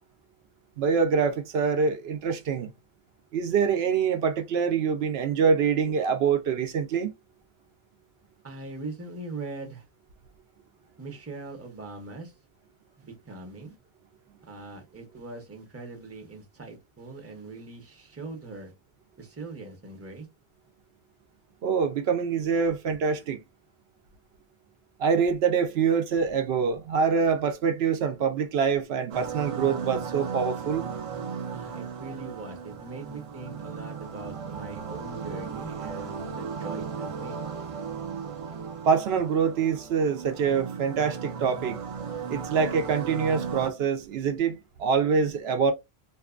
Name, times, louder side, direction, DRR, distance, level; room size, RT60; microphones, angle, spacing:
voice 1, 0.8-2.7 3.3-7.1 21.6-23.4 25.0-30.8 38.8-41.8 42.3-45.7, right 6 dB, 75° right, 0.8 m, -25 dB
voice 2, 8.4-9.9 11.0-12.3 13.0-13.8 14.4-18.7 19.2-20.3 31.5-37.4 38.5-38.6, right 3 dB, 15° right, 0.7 m, -41 dB
sound 1, 29.1-43.7, right 6 dB, 50° right, 0.4 m, -36 dB
2.7 x 2.3 x 2.3 m
omnidirectional pair, 1.1 m